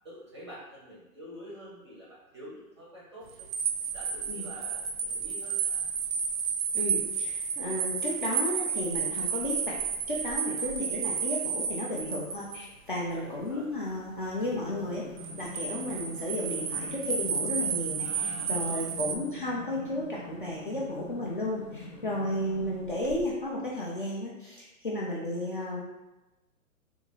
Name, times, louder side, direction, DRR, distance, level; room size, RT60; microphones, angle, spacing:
voice 1, 0.0-3.5 3.9-5.8 13.1-13.7 18.0-18.9, equal, 20° right, -7 dB, 0.5 m, -47 dB
sound 1, 3.3-12.7 15.2-19.2, right 6 dB, 70° right, 0.6 m, -32 dB
voice 2, 6.7-9.7 10.1-15.0 15.4-25.8, left 1 dB, 40° left, -5 dB, 0.4 m, -33 dB
sound 2, 14.3-23.5, left 1 dB, 70° left, 0.9 m, -44 dB
3.5 x 2.3 x 3.0 m, 1.0 s
hypercardioid pair, 165°, 44 cm